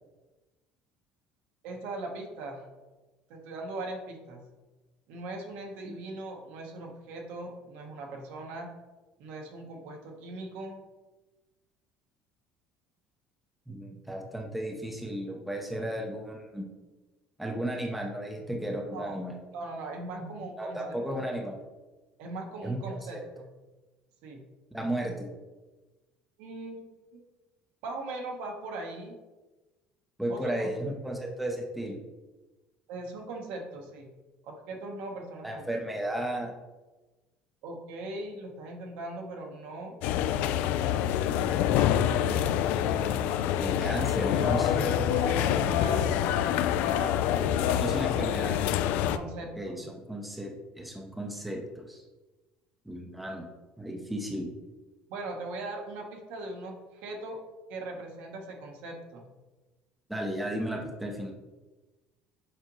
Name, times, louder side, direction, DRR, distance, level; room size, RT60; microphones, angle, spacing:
voice 1, 1.6-2.6 3.3-4.4 5.1-8.7 9.2-10.8 18.9-19.2 19.5-21.2 22.2-23.5 24.2-24.4 26.4-26.9 27.1-27.2 27.8-29.1 30.3-30.7 32.9-34.1 34.4-35.6 37.6-39.9 45.1-47.8 49.1-49.7 55.1-57.4 57.7-59.3, right 2 dB, 70° right, 2 dB, 1.1 m, -40 dB
voice 2, 13.7-16.7 17.4-19.4 20.2-21.6 22.6-23.2 24.7-25.3 30.2-32.0 35.4-36.5 42.2-42.4 42.7-43.1 43.6-45.0 47.8-48.7 49.6-52.0 52.9-53.5 53.8-54.5 60.1-61.3, right 1 dB, ahead, 1 dB, 0.6 m, -34 dB
sound 1, 40.0-49.2, left 10 dB, 65° left, 0.3 m, -26 dB
6.5 x 5.1 x 3.0 m, 1.2 s
cardioid pair, 175°, 3 cm